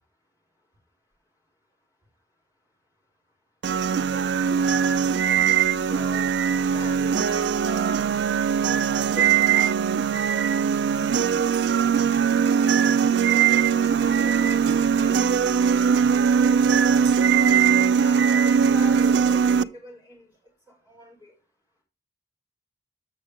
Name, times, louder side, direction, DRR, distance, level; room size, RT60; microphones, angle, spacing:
sound 1, 3.6-19.6, right 7 dB, 65° right, 0.3 m, -21 dB
voice 1, 4.1-4.6 5.4-5.5 5.8-6.3 6.7-8.1 8.6-9.8 13.3-14.6 16.2-20.3 20.9-21.3, right 1 dB, 20° left, 4.2 m, -42 dB
8.4 x 6.2 x 3.5 m
head